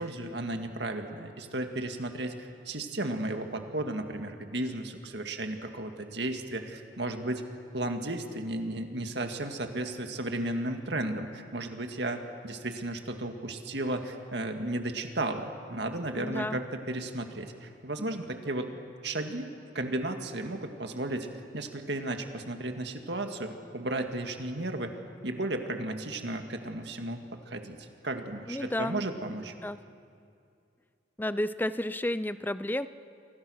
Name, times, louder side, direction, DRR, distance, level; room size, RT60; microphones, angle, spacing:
voice 1, 0.0-7.4 7.7-18.7 19.0-21.3 21.5-25.0 25.2-27.2 27.5-29.5, right 1 dB, 60° right, 5 dB, 2.0 m, -34 dB
voice 2, 16.1-16.6 28.5-29.0 29.6-29.8 31.2-32.9, left 1 dB, 10° left, 14 dB, 0.5 m, -31 dB
29.5 x 24.5 x 6.5 m, 2.4 s
head